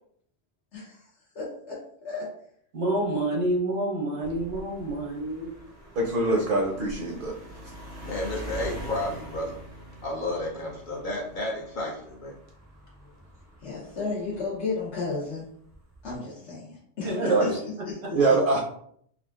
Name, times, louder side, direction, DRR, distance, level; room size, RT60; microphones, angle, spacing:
voice 1, 0.7-1.1 1.3-2.3 13.6-15.4 16.0-18.2, left 3 dB, 85° left, -7 dB, 1.2 m, -34 dB
voice 2, 2.7-5.5 17.0-17.5, right 1 dB, 85° right, -2 dB, 1.2 m, -28 dB
sound 1, 4.2-14.9 15.7-16.1, equal, 20° right, 0.4 m, -43 dB
voice 3, 5.9-7.4 17.3-17.6 18.1-18.6, right 3 dB, 60° right, -1 dB, 0.7 m, -23 dB
voice 4, 8.0-9.5 10.0-12.3, left 1 dB, 55° left, -2 dB, 0.7 m, -32 dB
3.5 x 2.4 x 2.3 m, 0.66 s
omnidirectional pair, 1.1 m